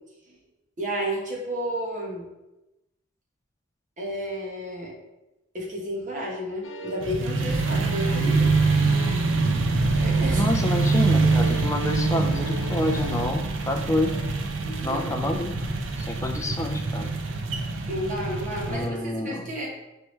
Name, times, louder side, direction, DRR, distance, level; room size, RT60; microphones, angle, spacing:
voice 1, 0.8-2.3 4.0-4.9 5.5-8.6 10.0-10.5 14.6-15.1 17.9-19.7, equal, 40° right, -2 dB, 1.0 m, -32 dB
sound 1, 6.6-7.2 7.4-9.4 9.7-13.4 14.0-14.3, left 3 dB, 75° left, 0.5 m, -40 dB
sound 2, 7.0-18.9, right 3 dB, 65° right, 0.5 m, -24 dB
voice 2, 10.4-14.2 14.8-15.5 16.0-17.2 18.7-19.5, left 1 dB, 15° left, 4 dB, 0.4 m, -28 dB
4.5 x 3.2 x 3.1 m, 0.96 s
head